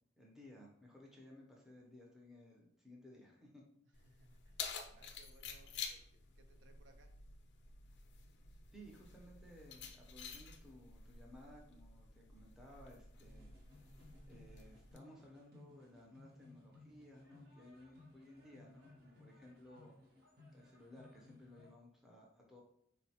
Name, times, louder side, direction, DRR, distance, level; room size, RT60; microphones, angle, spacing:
voice 1, 0.2-3.6 8.7-13.5 14.2-20.0 20.5-22.6, left 1 dB, ahead, -2 dB, 0.5 m, -58 dB
Keys jangling, 3.9-15.0, left 6 dB, 65° left, 0.4 m, -51 dB
voice 2, 4.0-7.1, right 2 dB, 75° right, 5 dB, 0.4 m, -67 dB
sound 1, 13.2-21.7, left 2 dB, 50° right, 0.7 m, -62 dB
3.8 x 2.1 x 2.7 m, 0.71 s
head